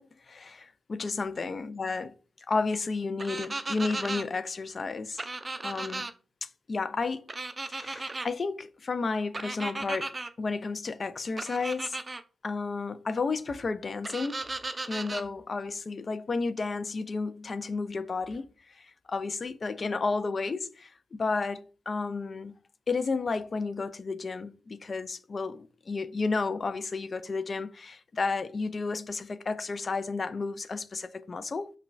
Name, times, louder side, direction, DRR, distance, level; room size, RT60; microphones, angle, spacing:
voice 1, 0.0-5.3 5.6-6.0 6.4-7.3 7.7-12.0 12.4-14.4 14.9-22.6 22.9-31.7, left 4 dB, 50° left, 0.3 m, -32 dB
sound 1, 3.2-4.2 5.2-6.1 7.3-8.3 9.3-10.3 11.4-12.2 14.0-15.2, right 2 dB, 35° right, 0.4 m, -35 dB
5.4 x 2.2 x 2.4 m
supercardioid pair, 45°, 0 cm